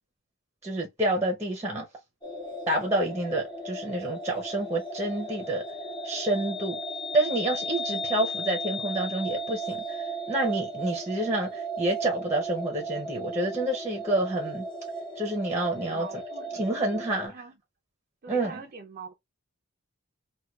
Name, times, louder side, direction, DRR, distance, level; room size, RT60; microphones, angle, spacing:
voice 1, 0.6-1.8 2.7-5.6 6.0-6.8 7.1-14.6 15.2-16.1 16.5-17.3 18.3-18.6, right 1 dB, 10° right, 0.8 m, -28 dB
sound 1, 2.2-17.3, right 1 dB, 20° left, 0.7 m, -35 dB
voice 2, 15.9-16.6 17.1-17.5 18.2-19.1, right 4 dB, 40° right, 0.5 m, -43 dB
4.4 x 2.4 x 2.3 m
head